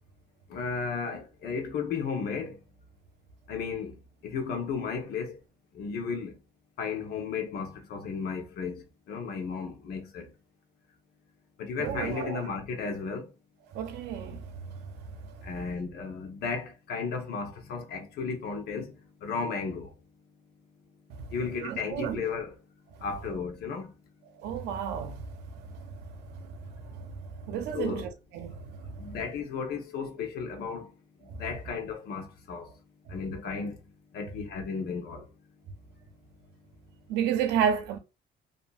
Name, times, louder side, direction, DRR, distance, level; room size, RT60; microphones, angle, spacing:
voice 1, 0.5-2.6 3.5-4.0 4.2-5.4 5.7-6.3 6.8-10.3 11.6-13.3 15.4-18.9 19.2-19.9 21.3-22.6 23.0-23.9 27.7-28.0 29.0-30.9 31.4-32.7 33.1-33.8 34.1-35.2, left 5 dB, 70° left, 0.9 m, -34 dB
voice 2, 11.8-12.4 13.7-14.9 15.2-15.3 21.1-21.3 21.6-22.2 24.4-25.4 25.7-29.2 31.3-31.4 33.1-33.2 37.1-38.0, right 8 dB, 85° right, 0.6 m, -33 dB
2.7 x 2.6 x 2.3 m
cardioid pair, 110°, 17 cm